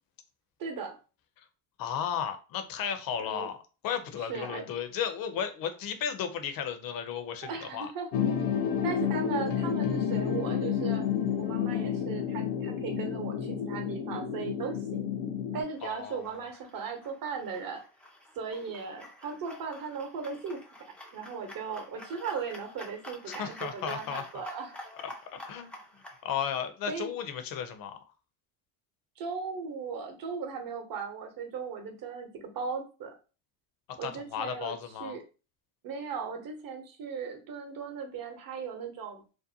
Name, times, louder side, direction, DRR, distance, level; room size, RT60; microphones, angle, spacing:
voice 1, 0.6-0.9 3.2-3.5 4.2-4.6 7.4-8.1 8.8-11.0 11.4-15.1 15.5-17.8 18.4-20.6 21.1-24.7 26.9-27.1 29.2-32.3 32.5-33.1 34.0-34.7 35.0-35.2 35.8-39.2, right 5 dB, 45° right, 4 dB, 0.9 m, -37 dB
voice 2, 1.8-3.6 3.8-7.9 15.8-16.4 23.3-24.4 25.0-25.7 26.2-28.0 34.0-35.2, left 8 dB, 45° left, 8 dB, 0.6 m, -34 dB
sound 1, 8.1-15.6, left 8 dB, 80° left, 0.7 m, -30 dB
sound 2, 15.7-26.2, left 1 dB, 5° left, 0.4 m, -48 dB
2.6 x 2.1 x 2.6 m, 0.33 s
supercardioid pair, 90°, 48 cm